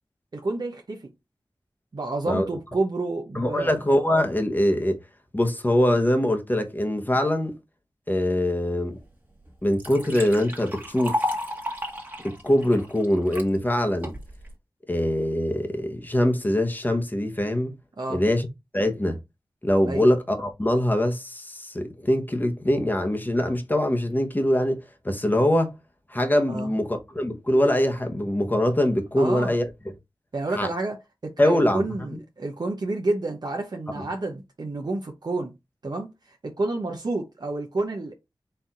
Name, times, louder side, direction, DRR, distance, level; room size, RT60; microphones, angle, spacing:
voice 1, 0.3-1.1 1.9-3.7 18.0-18.2 19.9-20.1 26.5-26.7 29.2-29.5 30.3-31.0 31.2-35.5 35.8-38.1, right 2 dB, 55° right, 0.9 m, -29 dB
voice 2, 3.3-5.0 5.3-7.5 8.1-9.0 9.6-11.2 12.2-14.1 14.9-17.7 18.1-18.5 18.7-19.2 19.6-25.7 26.1-29.6 30.6-30.7 31.4-31.8 32.1-32.2, left 1 dB, 20° left, 1.1 m, -23 dB
Liquid, 9.0-9.1 9.5-13.5 14.0-14.5, left 1 dB, 20° right, 1.5 m, -32 dB
4.5 x 2.7 x 3.7 m
wide cardioid pair, 55°, 8 cm